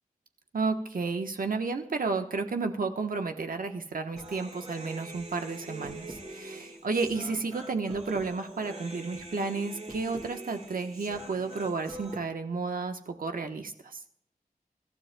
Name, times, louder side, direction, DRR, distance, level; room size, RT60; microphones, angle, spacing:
voice 1, 0.5-13.7, right 4 dB, 70° right, 5 dB, 1.1 m, -32 dB
Human voice, 4.1-12.2, right 2 dB, 45° right, 2.6 m, -44 dB
25.0 x 12.5 x 2.3 m, 0.71 s
wide cardioid pair, 75°, 15 cm